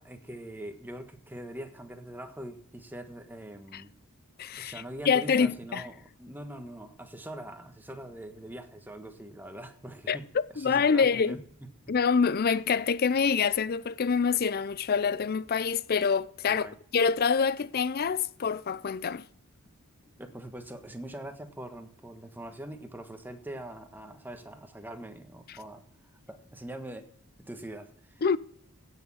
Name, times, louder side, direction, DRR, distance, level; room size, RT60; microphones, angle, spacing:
voice 1, 0.0-3.9 4.6-11.7 16.5-16.8 20.2-25.8 26.3-27.1 27.4-28.4, right 1 dB, 10° right, 1.3 m, -43 dB
voice 2, 4.4-4.7 5.1-5.8 10.1-10.2 10.6-11.4 11.9-16.7 16.9-19.2 28.2-28.4, left 6 dB, 45° left, 0.5 m, -26 dB
16.5 x 6.4 x 7.3 m
head